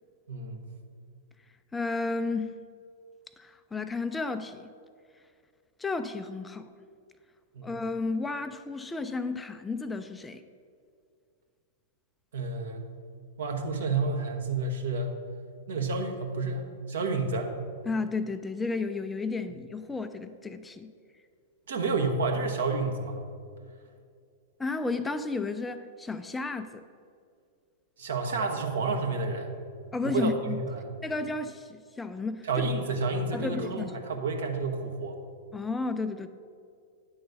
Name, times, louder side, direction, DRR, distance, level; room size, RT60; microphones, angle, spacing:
voice 1, 0.3-0.6 7.5-7.7 12.3-12.8 13.4-15.2 15.7-17.6 21.7-23.2 28.0-29.5 30.0-30.9 32.4-35.2, right 3 dB, 70° right, 3 dB, 1.0 m, -30 dB
voice 2, 1.7-2.5 3.4-4.7 5.8-6.7 7.6-10.4 17.9-20.9 24.6-26.9 29.9-30.6 31.0-32.7 33.3-33.9 35.5-36.3, left 3 dB, 10° left, 10 dB, 0.3 m, -32 dB
9.4 x 3.9 x 6.5 m, 2.3 s
figure-of-eight pair, 100°, 0 cm